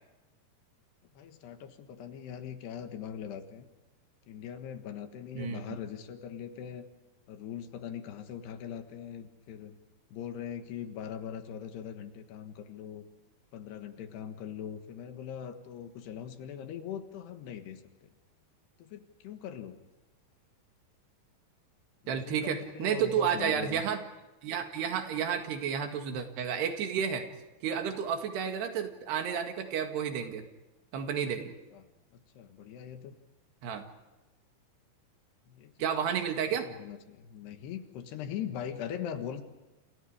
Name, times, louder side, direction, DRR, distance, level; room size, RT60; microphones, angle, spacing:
voice 1, 1.1-3.7 4.3-6.9 7.3-9.8 10.1-13.0 13.5-18.1 18.8-19.8 22.0-23.8 31.7-31.9 32.3-33.1 35.5-35.9 36.5-39.4, left 9 dB, 75° left, 7 dB, 3.5 m, -41 dB
voice 2, 5.4-5.8 22.1-24.0 24.4-27.3 27.6-30.4 30.9-31.5 33.6-33.8 35.8-36.7, right 8 dB, 75° right, 5 dB, 3.9 m, -31 dB
29.5 x 28.0 x 5.0 m, 1.0 s
omnidirectional pair, 4.9 m